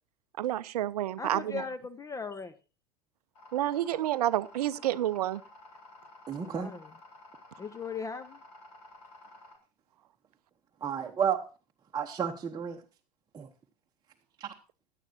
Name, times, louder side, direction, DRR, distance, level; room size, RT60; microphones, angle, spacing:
voice 1, 0.4-1.6 3.5-5.4, right 13 dB, 65° right, 0.5 m, -29 dB
voice 2, 1.2-2.5 6.4-6.9 7.6-8.4, left 4 dB, 15° left, 0.6 m, -38 dB
sound 1, 3.3-9.6, left 2 dB, 65° left, 4.1 m, -53 dB
voice 3, 6.3-6.7 10.8-11.4 11.9-12.8 13.3-13.5 14.4-14.5, right 7 dB, 20° right, 1.0 m, -31 dB
16.5 x 10.5 x 2.7 m
figure-of-eight pair, 85°, 21 cm